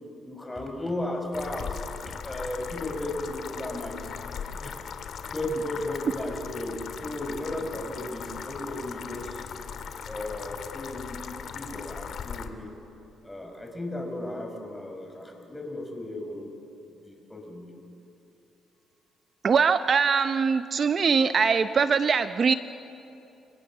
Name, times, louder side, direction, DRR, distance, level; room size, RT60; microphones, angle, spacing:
voice 1, 0.3-4.1 4.6-4.7 5.3-9.5 10.1-11.3 11.5-12.7 13.2-16.5 17.1-17.7, left 1 dB, 10° left, 3 dB, 5.2 m, -35 dB
sound 1, 1.3-12.5, left 7 dB, 65° left, 1.9 m, -38 dB
voice 2, 19.4-22.5, right 5 dB, 45° right, 11 dB, 0.7 m, -22 dB
29.0 x 26.0 x 7.3 m, 2.8 s
cardioid pair, 90°, 0 cm